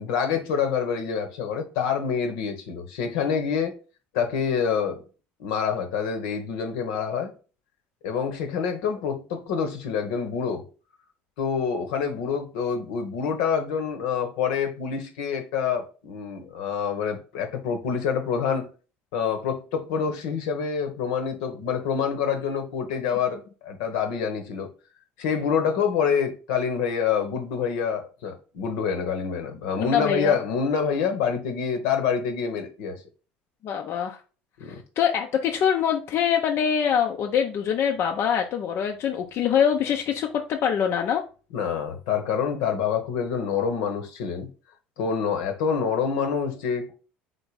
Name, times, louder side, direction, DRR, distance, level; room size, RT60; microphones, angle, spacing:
voice 1, 0.0-3.7 4.1-5.0 5.4-7.3 8.0-10.7 11.4-18.7 19.1-24.7 25.2-33.0 34.6-34.8 41.5-44.5 45.0-46.9, left 6 dB, 75° left, 1.0 m, -27 dB
voice 2, 29.8-30.4 33.6-34.2 35.0-41.2, left 8 dB, 55° left, 0.6 m, -24 dB
3.9 x 3.4 x 4.0 m
hypercardioid pair, 75°, 5 cm